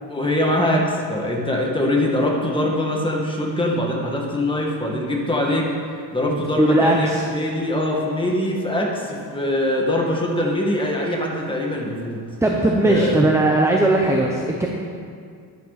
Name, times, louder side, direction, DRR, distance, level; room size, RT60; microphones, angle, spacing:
voice 1, 0.1-5.7 5.9-12.2 12.9-13.2, left 1 dB, 10° left, -2 dB, 2.0 m, -23 dB
voice 2, 6.3-7.2 12.4-14.7, right 2 dB, 5° right, 0 dB, 0.9 m, -18 dB
11.5 x 11.0 x 4.3 m, 2.3 s
cardioid pair, 115°, 44 cm